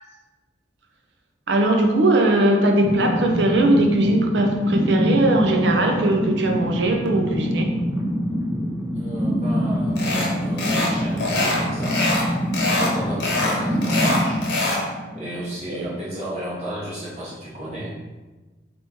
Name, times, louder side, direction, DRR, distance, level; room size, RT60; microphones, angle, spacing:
voice 1, 1.5-7.7 15.7-15.9, right 1 dB, 75° right, 3 dB, 0.6 m, -19 dB
sound 1, 2.8-15.5, equal, 5° right, 0.5 m, -25 dB
voice 2, 8.9-12.0 12.7-14.5 15.1-18.0, right 1 dB, 35° right, -8 dB, 1.0 m, -33 dB
sound 2, 10.0-10.3 10.6-10.9 11.2-12.3 12.5-12.9 13.2-14.8, left 2 dB, 60° left, 1.0 m, -23 dB
3.5 x 3.0 x 4.1 m, 1.2 s
head